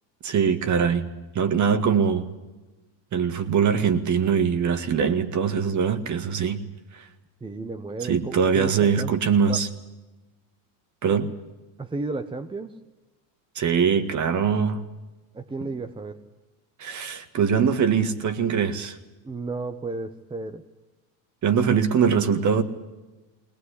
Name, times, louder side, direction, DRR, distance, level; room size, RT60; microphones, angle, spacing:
voice 1, 0.2-1.1 1.4-2.3 3.1-6.6 6.9-7.1 8.1-9.7 11.0-11.3 13.6-14.8 16.8-19.0 21.4-22.6, right 6 dB, 35° right, 10 dB, 2.0 m, -22 dB
voice 2, 7.4-9.1 9.5-9.6 11.8-12.8 15.3-16.2 19.2-20.6 21.7-21.8, right 3 dB, 10° right, 7 dB, 1.0 m, -33 dB
20.5 x 19.0 x 10.0 m, 1.1 s
supercardioid pair, 120°, 49 cm